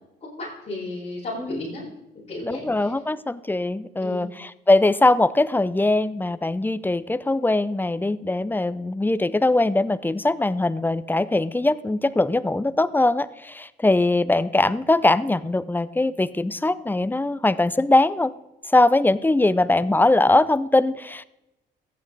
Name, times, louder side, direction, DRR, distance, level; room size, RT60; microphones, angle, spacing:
voice 1, 0.2-1.8 2.3-2.9 4.0-4.3, left 2 dB, 35° left, -10 dB, 5.1 m, -34 dB
voice 2, 2.5-18.3 18.7-21.2, left 2 dB, 10° left, 17 dB, 0.5 m, -21 dB
14.5 x 8.9 x 4.0 m, 0.94 s
cardioid pair, 90°, 20 cm